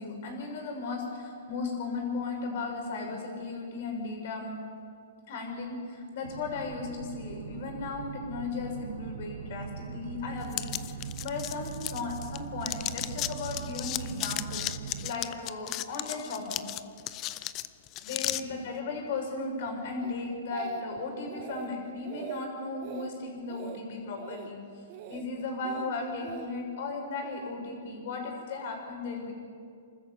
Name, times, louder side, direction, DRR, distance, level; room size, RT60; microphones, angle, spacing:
voice 1, 0.0-4.5 5.3-16.6 18.0-24.6 25.1-29.3, left 3 dB, 55° left, 1 dB, 6.2 m, -36 dB
sound 1, 6.2-15.1, right 7 dB, 65° right, 1.1 m, -41 dB
sound 2, 10.5-12.4 12.6-18.4, left 15 dB, 30° left, 0.6 m, -35 dB
Speech, 20.0-21.0 21.3-21.7 22.0-22.4 22.8-23.1 23.5-23.8 24.2-24.5 24.9-25.2 25.6-26.5 27.2-27.5, right 8 dB, 40° right, 1.8 m, -42 dB
28.0 x 13.5 x 7.9 m, 2.3 s
hypercardioid pair, 150°, 0 cm